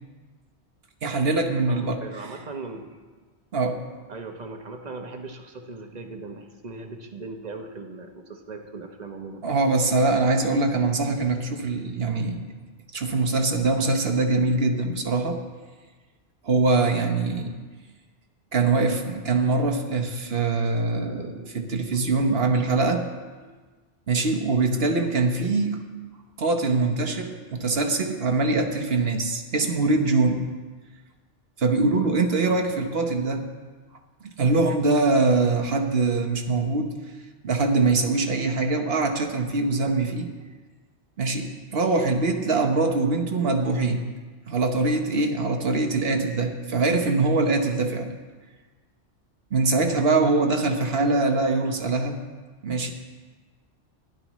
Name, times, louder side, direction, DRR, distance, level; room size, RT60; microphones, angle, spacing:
voice 1, 1.0-2.0 3.5-3.8 9.4-12.5 12.9-15.4 16.4-17.5 18.5-23.1 24.1-25.8 26.4-30.4 31.6-33.5 34.2-36.9 37.4-40.3 41.2-44.0 44.5-48.1 49.5-52.2 52.6-52.9, right 3 dB, 60° right, 4 dB, 1.2 m, -23 dB
voice 2, 1.7-2.9 4.1-9.4 32.4-32.6 49.7-50.0, right 3 dB, 40° right, 4 dB, 1.0 m, -38 dB
16.0 x 11.0 x 3.1 m, 1.4 s
omnidirectional pair, 1.2 m